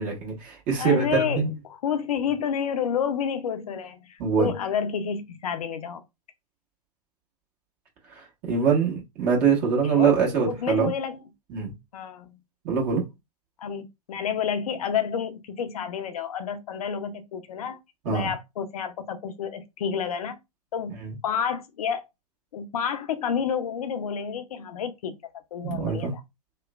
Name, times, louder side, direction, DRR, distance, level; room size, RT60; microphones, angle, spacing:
voice 1, 0.0-1.5 4.2-4.5 8.1-10.9 11.5-11.7 12.6-13.0 18.0-18.3 21.0-21.2 25.6-26.1, right 6 dB, 35° right, 1.3 m, -24 dB
voice 2, 0.8-6.0 9.8-10.2 10.5-11.2 11.9-12.4 13.6-17.8 18.1-20.4 20.7-21.0 21.2-22.0 22.5-25.2 25.5-26.2, left 7 dB, 65° left, 0.5 m, -29 dB
3.0 x 2.1 x 2.3 m
figure-of-eight pair, 105°, 20 cm